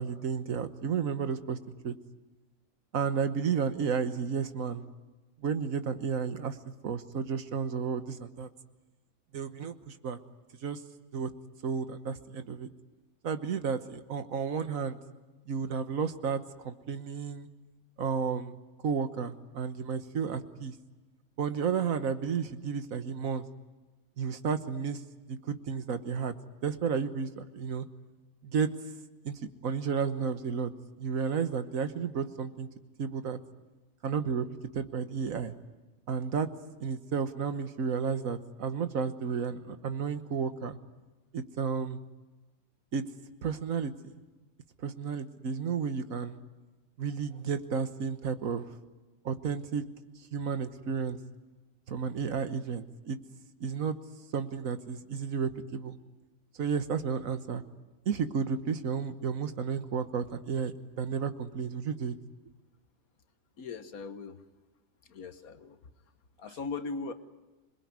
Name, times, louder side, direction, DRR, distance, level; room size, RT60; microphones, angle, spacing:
voice 1, 0.0-1.6 1.8-1.9 2.9-4.9 5.4-6.6 6.8-8.5 9.3-10.2 10.6-10.8 11.1-11.3 11.6-12.7 13.2-15.0 15.5-17.5 18.0-18.5 18.8-20.7 21.4-23.4 24.2-25.0 25.3-26.3 26.6-27.9 28.4-28.7 29.2-29.3 29.6-30.7 31.0-32.7 33.0-33.4 34.0-34.5 34.7-35.5 36.1-36.5 36.8-40.8 41.3-42.0 42.9-43.0 43.4-44.1 44.8-46.4 47.0-48.7 49.2-49.8 50.3-51.2 51.9-53.2 53.6-54.0 54.3-56.0 56.6-57.6 58.0-62.1, right 6 dB, 75° right, 10 dB, 1.6 m, -32 dB
voice 2, 63.6-64.4 65.1-65.8 66.4-67.1, left 4 dB, 90° left, 10 dB, 1.8 m, -39 dB
26.5 x 21.0 x 9.6 m, 1.2 s
omnidirectional pair, 1.5 m